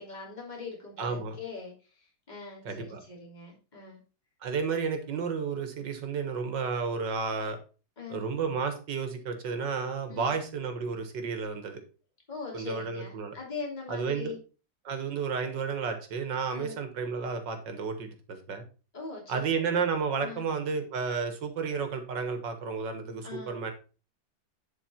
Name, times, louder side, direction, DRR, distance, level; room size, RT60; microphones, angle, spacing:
voice 1, 0.0-1.7 2.3-4.0 8.0-8.2 10.1-10.3 12.3-14.4 16.5-16.8 18.9-19.4 19.7-19.8 20.2-20.4 23.2-23.5, left 4 dB, 20° left, -3 dB, 3.1 m, -41 dB
voice 2, 1.0-1.4 2.6-3.0 4.4-7.6 8.1-11.8 12.5-13.4 13.9-14.3 14.9-18.6 19.3-23.7, right 5 dB, 70° right, 7 dB, 2.0 m, -32 dB
10.5 x 4.7 x 4.4 m, 0.35 s
omnidirectional pair, 2.1 m